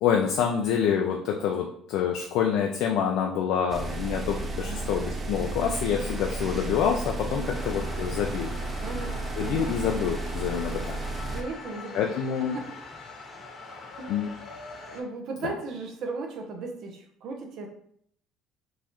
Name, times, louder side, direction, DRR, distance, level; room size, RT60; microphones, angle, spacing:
voice 1, 0.0-8.5 9.4-11.0 11.9-12.6 14.1-14.3, left 8 dB, 75° left, 2 dB, 0.4 m, -27 dB
sound 1, 3.7-11.4, right 2 dB, 20° right, 0.5 m, -33 dB
voice 2, 4.6-4.9 7.3-7.6 8.8-9.7 11.3-12.1 12.4-12.7 14.0-14.2 14.9-17.7, right 3 dB, 60° right, 2 dB, 0.7 m, -37 dB
sound 2, 7.5-15.0, left 3 dB, 40° left, 0.9 m, -42 dB
3.8 x 2.6 x 2.9 m, 0.65 s
cardioid pair, 120°, 0 cm